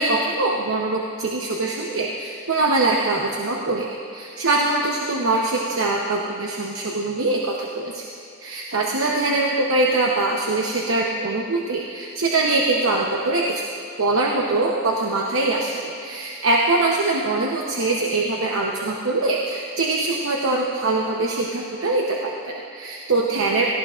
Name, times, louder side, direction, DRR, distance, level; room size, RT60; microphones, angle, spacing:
voice 1, 0.0-8.1 8.4-13.6 14.0-23.7, right 2 dB, 75° right, -2 dB, 0.9 m, -23 dB
18.0 x 15.5 x 2.5 m, 2.6 s
head